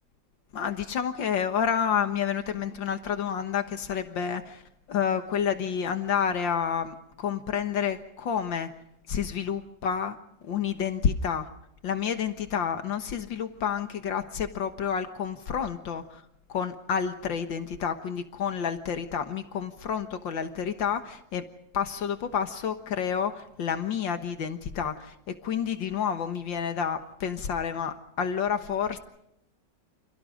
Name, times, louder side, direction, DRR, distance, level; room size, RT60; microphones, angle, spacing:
voice 1, 0.5-8.7 9.1-10.2 10.4-11.5 11.8-16.2 16.5-21.5 21.7-29.0, left 7 dB, 80° left, 8 dB, 2.1 m, -29 dB
29.5 x 28.0 x 3.8 m, 0.80 s
omnidirectional pair, 2.0 m